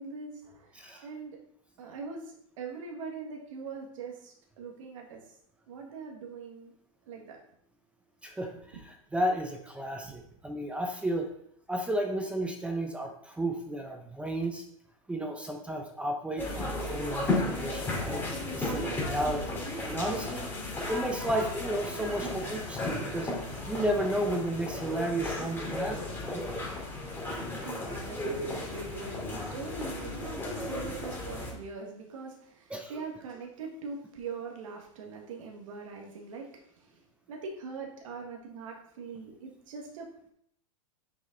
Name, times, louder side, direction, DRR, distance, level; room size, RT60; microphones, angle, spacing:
voice 1, 0.0-1.4 1.8-5.3 5.7-6.7 7.1-7.4 27.4-37.0 37.3-40.3, right 4 dB, 70° right, 1 dB, 1.8 m, -42 dB
voice 2, 8.2-8.8 9.1-11.3 11.7-14.6 15.1-18.2 18.5-19.6 19.8-20.5 20.9-23.3 23.7-26.4 32.7-32.9, right 1 dB, 5° right, 3 dB, 0.8 m, -33 dB
sound 1, 16.4-31.5, left 2 dB, 10° left, 2.6 m, -34 dB
6.6 x 5.1 x 3.9 m, 0.69 s
hypercardioid pair, 120°, 18 cm